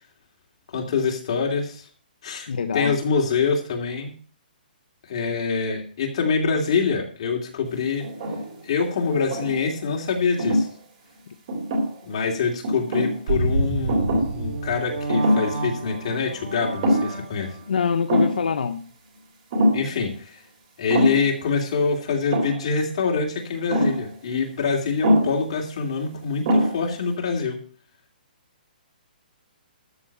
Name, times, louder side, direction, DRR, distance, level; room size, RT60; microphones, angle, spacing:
voice 1, 0.7-1.8 2.2-4.1 5.1-8.1 8.6-10.7 12.0-17.5 19.7-20.4 20.8-27.6, left 5 dB, 35° left, 0 dB, 2.9 m, -25 dB
voice 2, 2.5-3.0 17.7-18.9, left 6 dB, 65° left, 6 dB, 0.9 m, -24 dB
sound 1, 8.0-8.6 9.1-9.8 10.4-10.7 11.5-12.2 12.6-13.2 13.9-14.4 14.7-14.8 15.1-15.6 15.9-16.1 16.6-17.3 17.5-17.6 18.1-18.5 19.5-19.9 20.9-21.4 22.3-22.7 23.7-24.1 25.0-25.4 26.1-26.2 26.5-26.9, equal, 30° right, 3.6 m, -23 dB
sound 2, 13.3-17.7, right 2 dB, 60° right, 4.5 m, -28 dB
13.5 x 4.7 x 8.5 m, 0.41 s
hypercardioid pair, 180°, 5 cm